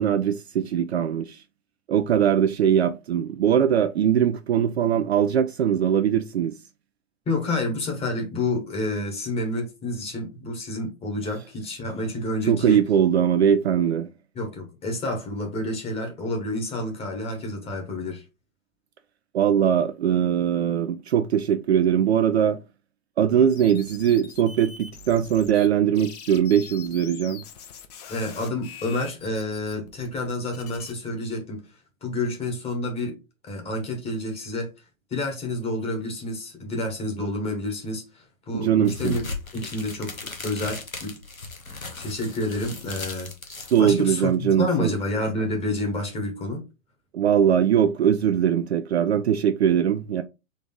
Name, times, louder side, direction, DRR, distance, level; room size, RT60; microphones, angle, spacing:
voice 1, 0.0-1.4 1.9-6.5 12.5-14.1 19.3-22.6 23.2-27.4 38.5-39.2 43.7-44.9 47.1-50.2, right 9 dB, 55° right, 0.5 m, -21 dB
voice 2, 7.3-12.8 14.3-18.2 28.1-31.6 32.0-33.2 33.4-34.7 35.1-39.2 39.5-41.1 42.0-46.6, left 2 dB, 15° left, 1.3 m, -29 dB
sound 1, 23.5-25.7 25.9-30.9, left 7 dB, 30° left, 0.7 m, -43 dB
sound 2, 38.8-44.3, left 3 dB, 90° left, 1.1 m, -37 dB
3.9 x 3.3 x 3.8 m
figure-of-eight pair, 115°, 40 cm